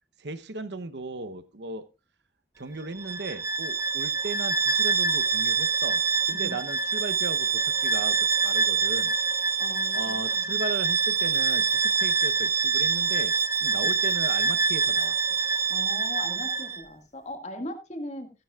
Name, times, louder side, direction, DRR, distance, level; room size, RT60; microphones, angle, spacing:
voice 1, 0.2-1.9 2.6-9.1 9.9-13.3 13.6-15.2, right 3 dB, 70° right, 11 dB, 0.9 m, -37 dB
Bowed string instrument, 3.0-16.8, right 5 dB, 15° right, 0.6 m, -25 dB
voice 2, 9.6-10.5 13.8-14.0 15.7-18.3, left 1 dB, 40° left, 5 dB, 2.0 m, -39 dB
15.5 x 11.0 x 2.4 m, 0.28 s
head